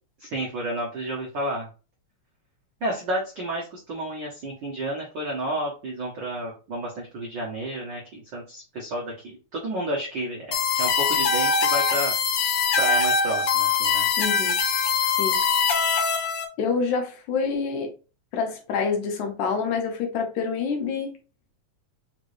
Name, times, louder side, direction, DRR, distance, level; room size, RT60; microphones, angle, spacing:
voice 1, 0.2-1.7 2.8-12.1 12.8-14.1, right 1 dB, 75° right, 1.0 m, -31 dB
sound 1, 10.5-16.5, left 5 dB, 90° left, 1.2 m, -22 dB
voice 2, 14.2-14.6 15.2-15.4 16.6-17.9 18.3-21.1, left 5 dB, 75° left, 2.3 m, -27 dB
5.2 x 3.2 x 2.6 m
omnidirectional pair, 3.7 m